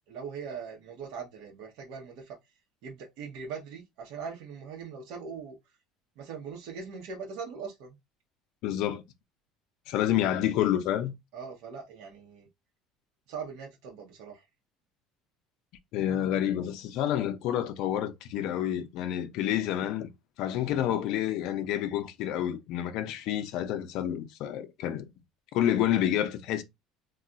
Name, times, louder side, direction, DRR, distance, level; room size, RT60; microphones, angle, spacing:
voice 1, 0.1-2.4 2.8-5.6 6.2-7.9 11.3-12.5 13.3-14.5, right 6 dB, 65° right, 0.9 m, -41 dB
voice 2, 8.6-9.0 9.9-11.1 15.9-20.1 20.4-25.1 25.5-26.6, left 11 dB, 55° left, 0.5 m, -29 dB
2.3 x 2.2 x 3.8 m
cardioid pair, 165°, 0 cm